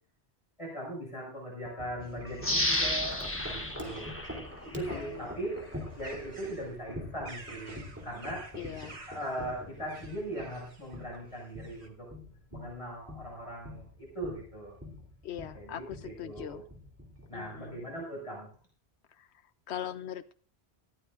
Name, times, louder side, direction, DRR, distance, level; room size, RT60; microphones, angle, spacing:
voice 1, 0.6-4.1 4.6-5.6 5.9-8.5 9.1-12.1 12.5-14.8 15.5-16.6 17.3-18.5, right 1 dB, 30° left, -4 dB, 6.5 m, -39 dB
Wind chime, 1.7-17.8, left 1 dB, 15° right, 3.3 m, -45 dB
sound 1, 2.0-11.9, right 3 dB, 80° right, 2.2 m, -53 dB
sound 2, 2.4-5.1 5.6-5.7, left 1 dB, 10° left, 1.3 m, -32 dB
voice 2, 4.9-5.4 8.5-9.0 15.2-16.6 17.3-17.8 19.1-19.3 19.7-20.4, left 10 dB, 90° left, 12 dB, 1.0 m, -41 dB
19.0 x 15.0 x 2.6 m, 0.42 s
omnidirectional pair, 1.1 m